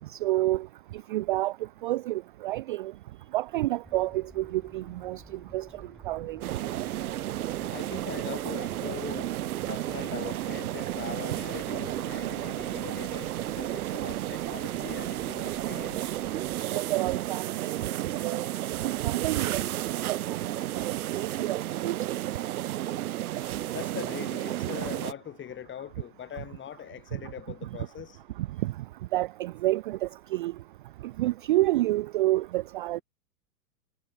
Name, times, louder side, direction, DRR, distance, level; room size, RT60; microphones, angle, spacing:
voice 1, 0.2-0.7 1.1-1.5 1.8-2.9 3.3-5.2 5.5-5.7 6.1-6.4 16.7-18.4 18.8-19.6 20.1-20.5 21.2-22.2 28.6-28.7 29.1-30.5 31.2-33.0, right 17 dB, 35° right, 0.4 m, -29 dB
sound 1, 3.8-16.6, equal, ahead, 3.2 m, -53 dB
sound 2, 6.4-25.1, right 13 dB, 60° right, 2.0 m, -32 dB
voice 2, 7.7-9.3 9.7-16.1 23.7-28.2, left 9 dB, 25° left, 6.6 m, -41 dB
hypercardioid pair, 110°, 49 cm